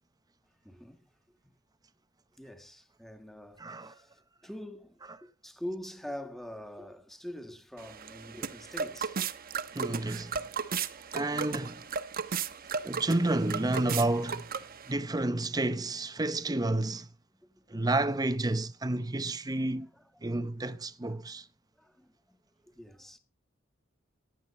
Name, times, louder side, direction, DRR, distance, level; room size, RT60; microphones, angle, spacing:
voice 1, 0.6-1.1 2.4-9.3 11.0-11.1 17.3-17.8 19.9-20.4 21.1-21.2 21.8-23.2, left 1 dB, ahead, 1.8 m, -45 dB
voice 2, 3.6-4.0 9.7-10.4 11.1-11.9 12.8-14.5 14.9-17.1 17.7-19.9 20.2-21.5, right 2 dB, 20° right, 0.7 m, -30 dB
sound 1, 7.8-14.9, right 6 dB, 50° right, 1.1 m, -36 dB
15.5 x 11.5 x 4.3 m
head